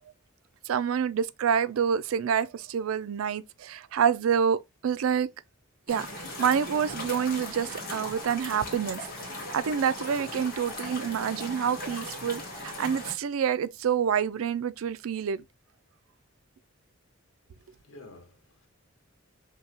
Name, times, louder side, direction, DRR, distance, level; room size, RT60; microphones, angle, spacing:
voice 1, 0.7-5.3 5.9-6.1 6.4-9.0 9.5-15.4, right 7 dB, 90° right, 0.4 m, -27 dB
sound 1, 5.9-13.1, left 1 dB, 45° left, 1.5 m, -38 dB
voice 2, 17.5-18.7, left 2 dB, 80° left, 1.3 m, -51 dB
5.5 x 2.2 x 2.7 m
head